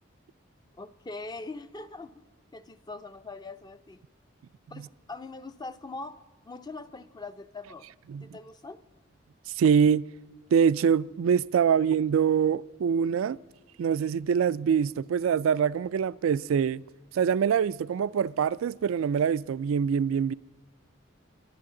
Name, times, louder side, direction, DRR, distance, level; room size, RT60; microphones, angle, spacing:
voice 1, 0.8-2.2 2.5-4.0 4.7-7.9 8.2-8.8, left 3 dB, 20° left, 0.5 m, -42 dB
voice 2, 9.5-10.0 10.5-13.4 13.8-16.8 17.1-20.3, right 7 dB, 85° right, 0.3 m, -24 dB
23.5 x 11.5 x 3.8 m
head